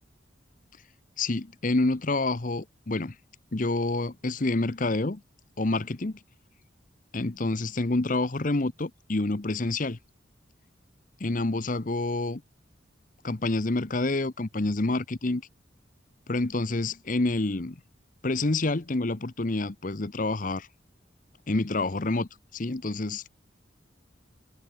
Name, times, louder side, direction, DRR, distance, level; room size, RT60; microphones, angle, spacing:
voice 1, 1.2-3.2 3.5-5.2 5.6-6.2 7.1-10.0 11.2-12.4 13.2-15.4 16.3-17.8 18.2-20.7 21.5-23.3, left 2 dB, 45° left, 0.9 m, -28 dB
head